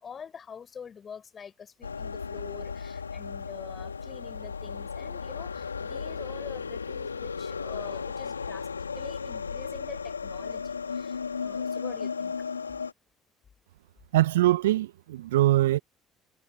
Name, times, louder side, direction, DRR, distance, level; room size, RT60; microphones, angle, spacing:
voice 1, 0.0-8.7 8.9-12.3, left 7 dB, 35° left, 6.5 m, -46 dB
sound 1, 1.8-12.9, left 5 dB, 85° left, 1.9 m, -35 dB
voice 2, 14.1-15.8, right 15 dB, 75° right, 1.3 m, -22 dB
figure-of-eight pair, 55°, 0 cm